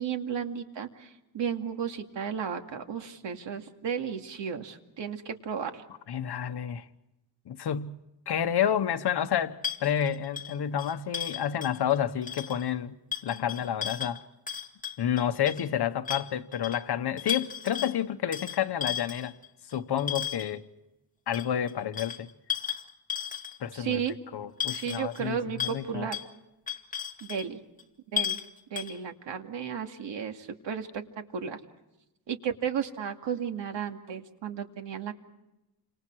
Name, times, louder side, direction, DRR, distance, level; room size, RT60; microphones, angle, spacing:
voice 1, 0.0-5.8 23.7-24.1 24.7-26.2 27.2-27.6 28.1-28.4 28.7-31.6 32.3-35.1, right 7 dB, 75° right, 2.5 m, -34 dB
voice 2, 6.1-6.9 7.5-8.0 8.3-13.0 13.2-14.2 15.0-19.3 19.7-20.6 21.3-22.3 23.6-24.0 24.3-26.1, left 9 dB, 60° left, 1.3 m, -29 dB
sound 1, 9.6-12.0 12.2-12.7 13.1-15.7 16.1-16.8 17.2-17.9 18.3-20.6 21.3-23.8 24.1-24.2 24.6-25.3 25.6-25.8 26.1-26.3 26.7-27.5 27.8-27.9 28.2-28.5 28.8-29.0, left 9 dB, 20° left, 2.2 m, -35 dB
30.0 x 26.5 x 4.8 m
wide cardioid pair, 150°, 43 cm